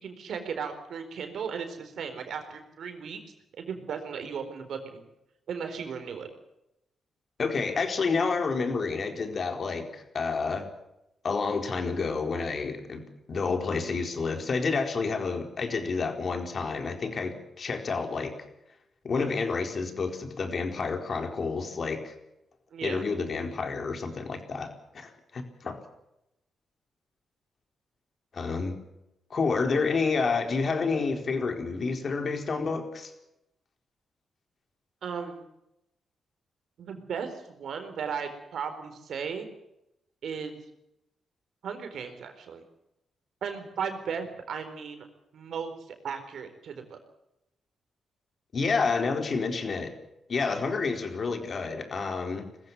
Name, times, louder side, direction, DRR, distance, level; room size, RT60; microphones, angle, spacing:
voice 1, 0.0-3.2 3.6-5.1 5.5-6.3 22.7-23.1 35.0-35.4 36.8-39.5 40.2-40.6 41.6-42.6 43.4-45.1 45.3-45.7 46.0-47.0, right 6 dB, 70° right, 7 dB, 4.3 m, -36 dB
voice 2, 7.4-10.7 11.2-18.3 19.0-22.1 22.8-25.8 28.3-28.8 29.3-33.1 48.5-49.9 50.3-52.5, left 4 dB, 55° left, 5 dB, 4.3 m, -29 dB
21.5 x 15.0 x 9.8 m, 0.86 s
supercardioid pair, 50°, 0 cm